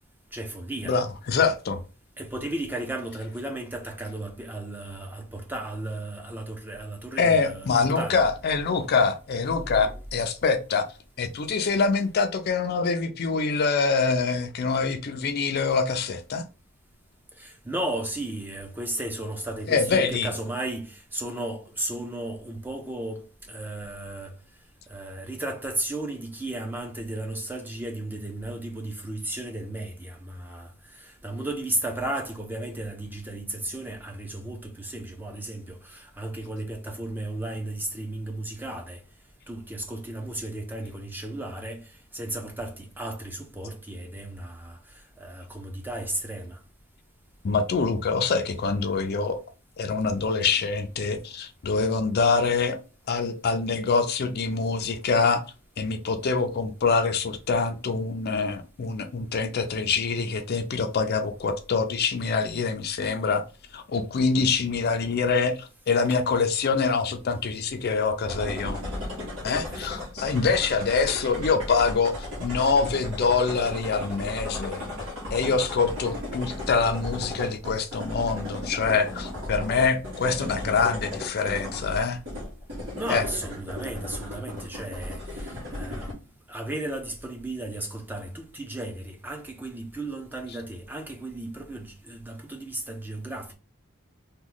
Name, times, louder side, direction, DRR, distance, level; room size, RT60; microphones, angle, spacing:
voice 1, 0.3-1.0 2.2-8.2 9.7-10.0 17.4-24.4 24.9-39.0 39.5-44.8 45.2-46.6 50.4-50.6 69.7-69.9 82.9-86.1 86.5-93.5, right 1 dB, 10° right, 0.6 m, -34 dB
voice 2, 0.9-1.8 7.2-10.9 11.2-16.4 19.7-20.3 47.4-49.4 49.8-52.8 53.1-55.4 55.8-63.4 63.7-68.8 69.4-74.8 75.3-82.2 83.1-83.2, left 4 dB, 50° left, 0.4 m, -25 dB
sound 1, 68.2-86.1, left 1 dB, 65° right, 1.4 m, -35 dB
3.0 x 2.3 x 3.8 m
head